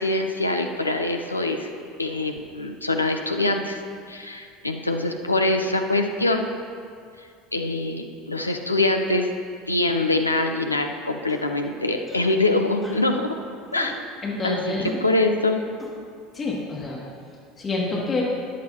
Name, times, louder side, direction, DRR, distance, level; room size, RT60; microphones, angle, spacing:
voice 1, 0.0-1.7 2.0-3.8 4.1-6.5 7.5-9.3 9.7-13.4 13.7-14.0 14.4-14.6 15.0-15.6, left 2 dB, 90° left, 4 dB, 0.6 m, -24 dB
sound 1, 11.3-11.5 12.1-12.3 12.8-13.1 13.7-13.9 14.8-15.0 15.8-15.9, left 1 dB, ahead, 1.9 m, -41 dB
voice 2, 14.2-15.0 16.3-17.0 17.6-18.2, left 3 dB, 25° left, -4 dB, 2.1 m, -27 dB
13.5 x 10.5 x 2.8 m, 2.3 s
figure-of-eight pair, 70°, 0 cm